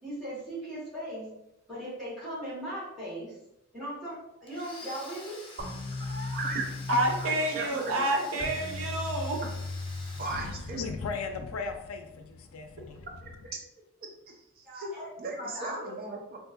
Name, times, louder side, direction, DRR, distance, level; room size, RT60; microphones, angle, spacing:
voice 1, 0.0-1.3 1.7-3.4 3.7-5.4 10.7-10.8 14.6-15.1 15.4-15.9, right 1 dB, ahead, 1.5 m, -38 dB
Domestic sounds home sounds, 4.5-11.3, left 3 dB, 25° left, 0.6 m, -48 dB
sound 1, 5.6-11.2, left 3 dB, 65° right, 1.3 m, -38 dB
voice 2, 5.9-6.7 7.2-7.9 10.2-10.8 13.2-13.3 14.3-14.9 15.2-16.4, right 3 dB, 45° right, 0.6 m, -37 dB
voice 3, 6.9-9.4, right 1 dB, 80° right, 0.7 m, -28 dB
voice 4, 10.3-13.4, left 4 dB, 80° left, 0.4 m, -37 dB
3.6 x 2.5 x 2.5 m
head